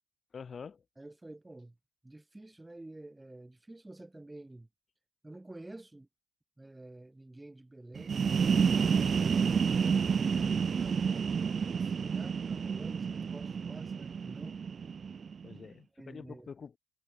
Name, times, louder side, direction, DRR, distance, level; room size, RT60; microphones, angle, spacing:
voice 1, 0.3-0.8 15.4-16.8, left 6 dB, 45° left, 6.0 m, -46 dB
voice 2, 1.0-1.7 2.0-4.7 5.2-6.1 6.6-8.2 8.8-14.6 16.0-16.5, right 2 dB, 15° right, 4.3 m, -49 dB
sound 1, 7.9-15.6, right 6 dB, 45° right, 1.1 m, -30 dB
hypercardioid pair, 50°, 0 cm